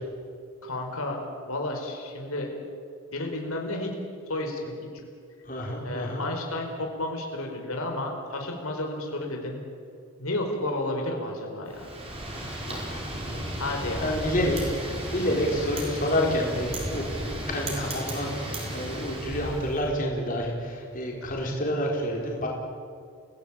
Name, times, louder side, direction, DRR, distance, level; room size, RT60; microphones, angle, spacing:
voice 1, 0.6-1.2 1.5-2.5 3.1-4.0 4.3-4.8 5.8-9.6 10.2-11.9 13.6-14.1 15.2-15.5, left 2 dB, 75° left, 2 dB, 4.3 m, -32 dB
voice 2, 5.4-6.2 12.6-12.8 13.3-13.4 13.7-22.5, equal, 35° left, -1 dB, 4.4 m, -29 dB
Wind, 11.7-19.8, right 1 dB, 25° right, 5.2 m, -34 dB
28.5 x 18.5 x 8.8 m, 2.4 s
head